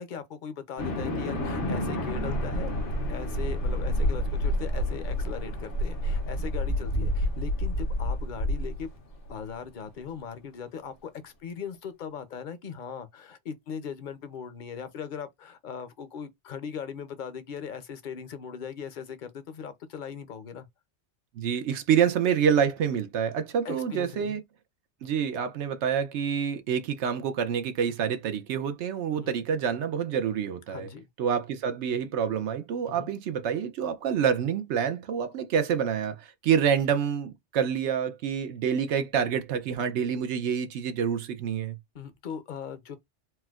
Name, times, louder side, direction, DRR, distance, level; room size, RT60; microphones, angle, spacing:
voice 1, 0.0-2.7 3.1-8.9 9.3-20.7 23.6-24.4 29.1-29.4 30.7-31.1 32.9-33.1 41.9-43.0, left 7 dB, 50° left, 0.7 m, -39 dB
sound 1, 0.8-9.3, equal, 90° left, 1.3 m, -29 dB
voice 2, 21.4-24.4 25.0-30.9 31.2-41.8, right 7 dB, 85° right, 0.9 m, -27 dB
4.4 x 2.0 x 2.3 m
omnidirectional pair, 1.2 m